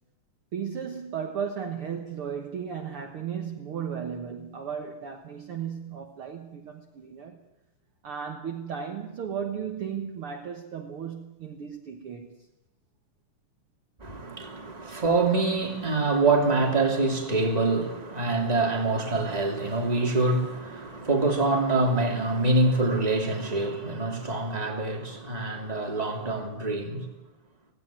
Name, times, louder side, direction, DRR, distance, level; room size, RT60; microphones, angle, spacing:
voice 1, 0.5-7.4 8.0-12.5, right 7 dB, 55° right, 2.0 m, -35 dB
voice 2, 14.0-27.0, right 2 dB, 15° right, 2.7 m, -25 dB
17.5 x 16.5 x 9.2 m
omnidirectional pair, 3.5 m